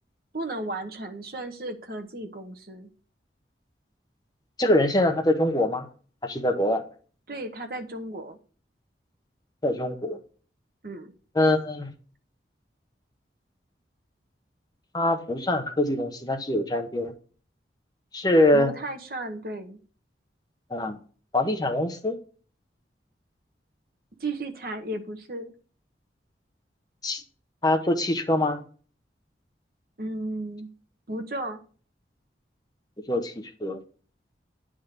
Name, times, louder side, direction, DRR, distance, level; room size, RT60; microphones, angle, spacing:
voice 1, 0.3-2.9 7.3-8.4 10.8-11.1 18.5-19.8 24.2-25.5 30.0-30.7 31.1-31.6, right 2 dB, 55° right, 1.1 m, -34 dB
voice 2, 4.6-5.9 6.2-6.8 9.6-10.2 11.4-11.9 14.9-17.1 18.1-18.7 20.7-21.0 21.3-22.2 27.0-27.2 27.6-28.6 33.1-33.3 33.6-33.8, left 1 dB, 20° left, 0.8 m, -23 dB
10.5 x 3.7 x 6.6 m
head